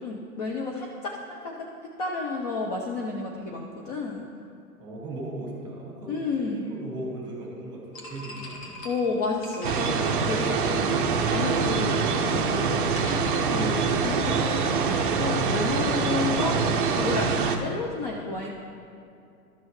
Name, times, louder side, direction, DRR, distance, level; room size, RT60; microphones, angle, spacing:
voice 1, 0.0-1.7 2.0-4.3 6.1-6.6 8.8-10.9 11.3-16.6 16.9-18.5, left 3 dB, 25° left, -1 dB, 0.5 m, -31 dB
voice 2, 4.8-8.8, right 1 dB, 10° right, -2 dB, 1.8 m, -37 dB
sound 1, 7.9-14.2, left 1 dB, 55° left, 1.7 m, -44 dB
sound 2, 9.6-17.6, right 5 dB, 35° right, 0.5 m, -25 dB
12.5 x 6.1 x 3.1 m, 2.6 s
figure-of-eight pair, 120°, 46 cm